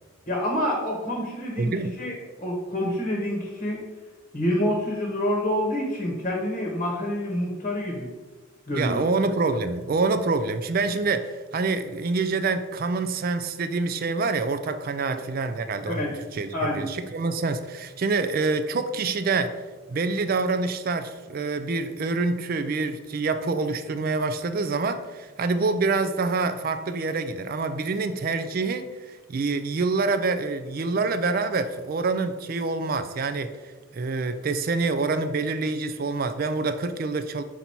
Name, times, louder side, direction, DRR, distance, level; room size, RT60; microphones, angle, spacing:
voice 1, 0.3-1.7 2.0-3.8 4.3-8.1 8.7-9.0 15.8-16.1 16.5-16.9, left 1 dB, 35° left, -1 dB, 1.0 m, -27 dB
voice 2, 1.6-1.9 8.7-19.6 19.9-33.5 33.9-37.4, right 3 dB, 45° right, 10 dB, 0.4 m, -26 dB
5.9 x 4.0 x 4.3 m, 1.3 s
head